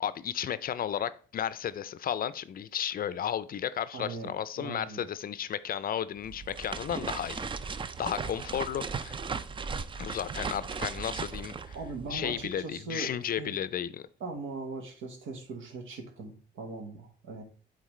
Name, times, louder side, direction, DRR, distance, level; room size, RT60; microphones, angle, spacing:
voice 1, 0.0-9.2 10.0-11.8 12.1-14.1, left 9 dB, 50° left, 0.4 m, -34 dB
voice 2, 3.9-5.0 11.7-13.5 14.2-17.4, right 3 dB, 85° right, 1.4 m, -40 dB
sound 1, 6.2-12.6, right 5 dB, 25° right, 0.4 m, -37 dB
8.6 x 3.9 x 3.1 m
cardioid pair, 90°, 20 cm